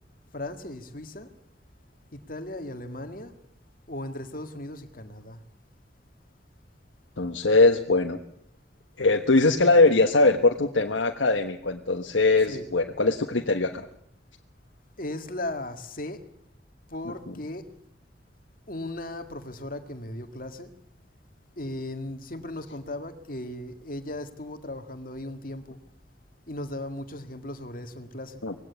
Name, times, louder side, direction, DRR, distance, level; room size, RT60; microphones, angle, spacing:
voice 1, 0.3-1.3 2.1-3.4 3.9-5.4 12.5-12.7 15.0-16.2 16.9-17.6 18.7-20.7 21.6-25.8 26.5-28.4, left 1 dB, 50° left, 2.0 m, -37 dB
voice 2, 7.2-8.2 9.0-13.8 17.3-17.4 28.4-28.5, left 3 dB, 90° left, 1.4 m, -21 dB
20.0 x 17.0 x 8.4 m
head